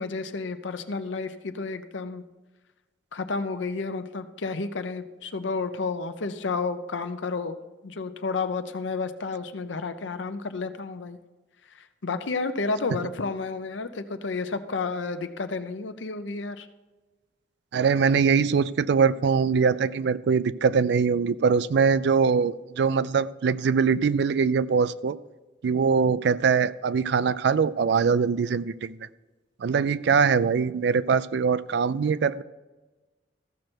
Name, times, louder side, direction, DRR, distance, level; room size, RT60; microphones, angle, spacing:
voice 1, 0.0-2.2 3.1-7.6 7.8-11.2 11.7-16.7, left 4 dB, 80° left, 10 dB, 0.7 m, -31 dB
voice 2, 17.7-25.2 25.6-29.0 29.6-32.4, right 5 dB, 60° right, 17 dB, 0.4 m, -22 dB
14.5 x 6.4 x 4.5 m, 1.2 s
head